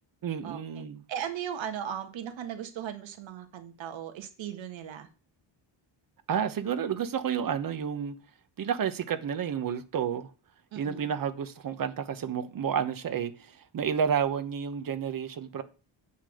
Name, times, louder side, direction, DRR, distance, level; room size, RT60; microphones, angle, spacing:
voice 1, 0.2-1.0 6.3-8.2 8.6-10.3 10.8-15.6, right 7 dB, 45° right, 1.1 m, -30 dB
voice 2, 1.1-5.1 10.7-11.1, right 9 dB, 70° right, 1.7 m, -37 dB
8.5 x 5.7 x 7.7 m
wide cardioid pair, 170°, 47 cm